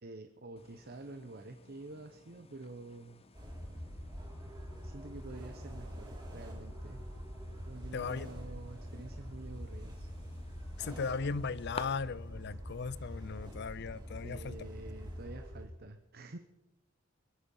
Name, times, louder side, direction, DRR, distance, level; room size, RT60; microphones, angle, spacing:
voice 1, 0.0-3.2 4.8-7.1 7.7-10.1 14.2-16.4, right 2 dB, 50° right, 0.9 m, -48 dB
sound 1, 0.5-11.8, left 4 dB, 30° left, 0.8 m, -53 dB
sound 2, 3.3-15.7, equal, 20° right, 4.6 m, -45 dB
voice 2, 7.9-8.3 10.8-14.6, left 5 dB, 55° left, 0.5 m, -37 dB
23.5 x 8.7 x 5.5 m
head